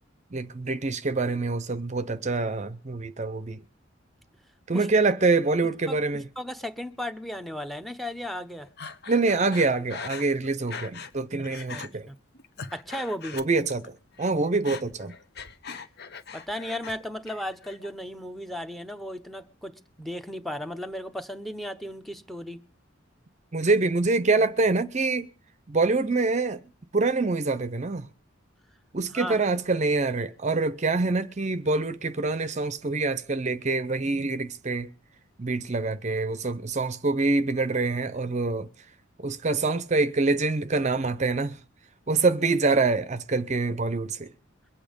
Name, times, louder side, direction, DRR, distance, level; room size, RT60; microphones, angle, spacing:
voice 1, 0.3-3.6 4.7-6.2 9.1-12.1 13.3-13.9 14.2-15.1 23.5-25.3 25.7-26.6 26.9-28.1 28.9-34.9 35.4-38.7 39.2-41.6 42.1-44.3, right 3 dB, 35° right, 0.7 m, -25 dB
voice 2, 5.9-8.7 11.7-12.2 12.7-13.4 16.3-19.7 20.0-22.6 29.1-29.4, left 1 dB, ahead, 0.9 m, -35 dB
Breathing, 8.8-11.2 11.4-11.9 12.3-13.9 14.1-17.0 17.3-17.9, left 5 dB, 55° left, 1.1 m, -40 dB
22.5 x 8.5 x 5.2 m
head